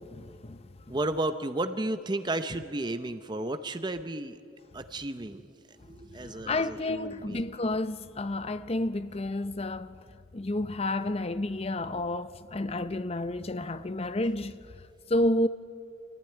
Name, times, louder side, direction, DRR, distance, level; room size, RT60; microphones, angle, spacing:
voice 1, 0.0-1.0 6.2-10.0 10.3-14.6 15.1-15.5, left 1 dB, 30° left, 0.6 m, -30 dB
voice 2, 0.9-4.4 4.7-5.5 5.9-7.5, right 2 dB, 25° right, 0.7 m, -33 dB
23.5 x 15.0 x 9.8 m
head